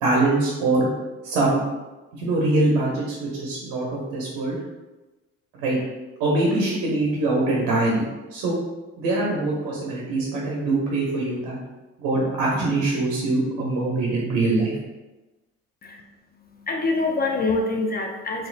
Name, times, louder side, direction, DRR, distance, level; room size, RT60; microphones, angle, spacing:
voice 1, 0.0-0.9 1.2-1.6 2.1-4.6 5.5-5.8 6.2-8.6 9.0-11.6 12.0-14.8, right 2 dB, 80° right, -3 dB, 0.8 m, -23 dB
voice 2, 16.3-18.5, left 3 dB, 30° left, 2 dB, 0.5 m, -25 dB
3.9 x 2.7 x 2.5 m, 1.1 s
supercardioid pair, 65°, 33 cm